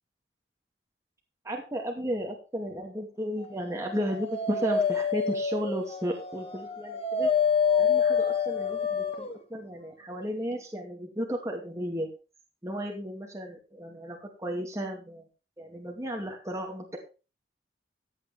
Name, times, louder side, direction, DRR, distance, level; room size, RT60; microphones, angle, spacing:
voice 1, 1.4-7.3 7.8-12.1 12.6-15.3 15.6-17.0, equal, 15° right, 0 dB, 2.4 m, -34 dB
Dog, 3.8-9.4, left 6 dB, 35° left, 1.5 m, -27 dB
15.5 x 8.6 x 3.5 m, 0.32 s
head